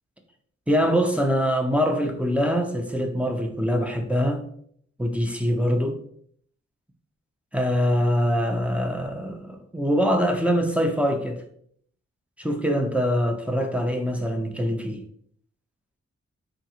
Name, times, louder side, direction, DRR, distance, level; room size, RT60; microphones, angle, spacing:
voice 1, 0.7-4.4 5.0-6.0 7.5-11.4 12.4-15.0, equal, 5° right, 4 dB, 0.7 m, -23 dB
3.7 x 3.6 x 2.9 m, 0.64 s
cardioid pair, 65°, 29 cm